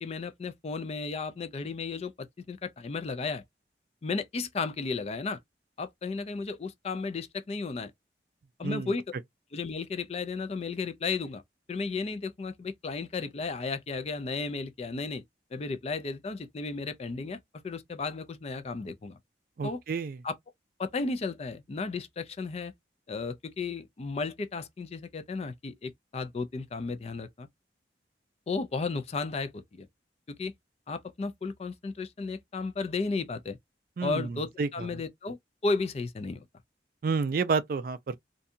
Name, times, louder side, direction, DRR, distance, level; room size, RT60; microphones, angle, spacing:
voice 1, 0.0-3.4 4.0-5.4 5.8-7.9 8.6-9.1 9.5-11.4 11.7-15.2 15.5-19.2 19.6-19.8 20.2-20.4 20.8-22.7 23.1-27.5 28.5-29.9 30.3-30.5 30.9-33.6 34.0-35.4 35.6-36.5, left 4 dB, 35° left, 0.4 m, -34 dB
voice 2, 19.6-20.2 34.0-34.3 34.6-34.7 37.0-38.2, right 4 dB, 50° right, 0.3 m, -29 dB
2.6 x 2.3 x 2.6 m
head